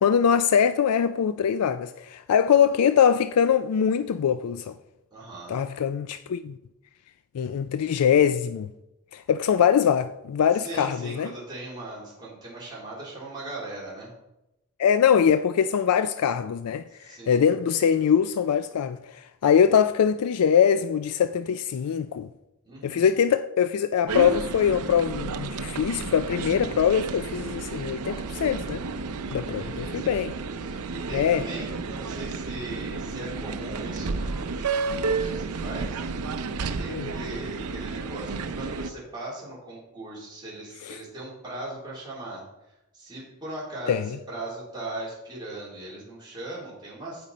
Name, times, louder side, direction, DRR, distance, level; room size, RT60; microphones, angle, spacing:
voice 1, 0.0-4.8 5.5-6.5 7.3-8.7 9.1-11.3 14.8-22.3 22.8-28.8 29.3-30.3 31.1-31.4 36.9-37.1 40.8-41.0 43.9-44.2, left 8 dB, 90° left, 0.4 m, -23 dB
voice 2, 5.1-5.6 10.5-14.1 17.0-17.5 22.6-23.2 29.5-30.2 30.6-36.0 36.6-42.4 42.9-47.2, right 2 dB, 20° right, 3.5 m, -39 dB
sound 1, 24.1-38.9, right 4 dB, 85° right, 0.6 m, -32 dB
15.5 x 5.3 x 4.2 m
head